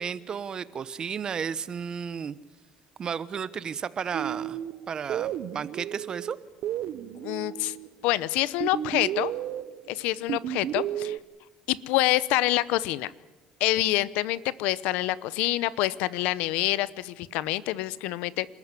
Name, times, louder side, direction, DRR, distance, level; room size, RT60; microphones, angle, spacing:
voice 1, 0.0-2.4 3.0-4.6 4.9-6.4, right 7 dB, 35° right, 17 dB, 1.0 m, -33 dB
sound 1, 4.1-7.9 8.6-11.2, right 11 dB, 65° right, 0.8 m, -33 dB
voice 2, 7.2-7.7 8.0-9.3 9.9-11.2 11.7-13.1 13.6-18.5, left 16 dB, 85° left, 18 dB, 0.9 m, -26 dB
27.0 x 13.5 x 9.7 m, 1.1 s
cardioid pair, 115°, 2 cm